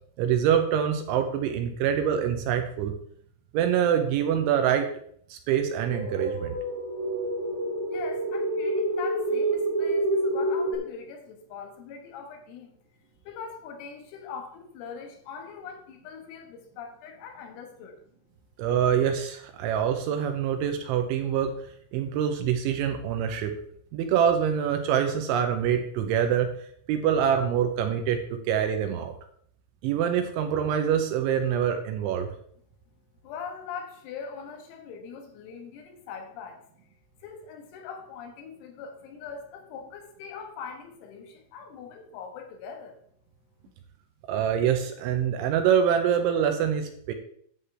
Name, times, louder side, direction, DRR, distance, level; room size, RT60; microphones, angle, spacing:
voice 1, 0.2-2.9 3.5-4.9 5.3-6.5 18.6-21.5 21.9-23.5 23.9-26.5 26.9-29.1 29.8-32.3 44.3-47.1, right 8 dB, 80° right, 5 dB, 2.9 m, -25 dB
sound 1, 5.8-10.7, right 1 dB, 35° right, 1.3 m, -28 dB
voice 2, 7.9-12.8 13.3-18.0 33.2-36.6 37.2-43.0, left 6 dB, 90° left, 4 dB, 4.0 m, -42 dB
11.0 x 8.2 x 3.3 m, 0.64 s
omnidirectional pair, 5.9 m